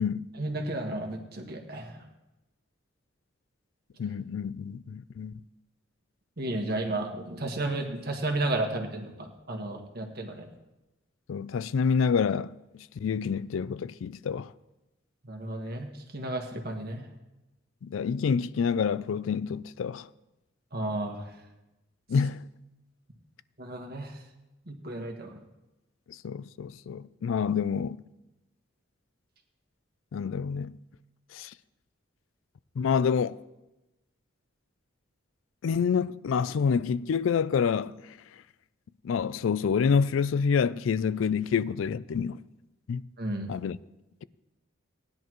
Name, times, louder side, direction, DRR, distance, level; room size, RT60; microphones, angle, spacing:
voice 1, 0.4-2.0 6.4-10.5 15.2-17.1 20.7-21.3 23.6-24.2 24.7-25.4 43.2-43.5, right 2 dB, 50° right, 1.6 m, -33 dB
voice 2, 4.0-5.3 11.3-12.5 13.0-14.5 17.8-20.1 22.1-22.5 26.1-28.0 30.1-30.8 31.3-31.5 32.8-33.4 35.6-38.2 39.0-42.4 42.9-43.0 43.5-43.8, left 6 dB, 75° left, 0.3 m, -27 dB
18.5 x 10.5 x 3.1 m
head